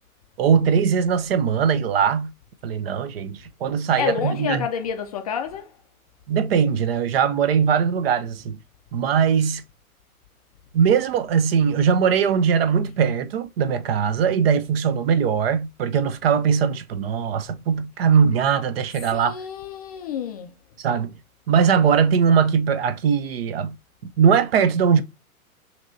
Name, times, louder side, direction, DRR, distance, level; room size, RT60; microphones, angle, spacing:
voice 1, 0.4-2.3 2.6-4.7 6.3-8.6 8.9-9.6 10.7-19.4 20.8-21.1 21.5-23.8 24.0-25.0, right 7 dB, 45° right, 0.6 m, -20 dB
voice 2, 4.0-5.7 19.1-20.5, left 8 dB, 30° left, 0.4 m, -28 dB
5.9 x 2.9 x 2.6 m
figure-of-eight pair, 115°, 44 cm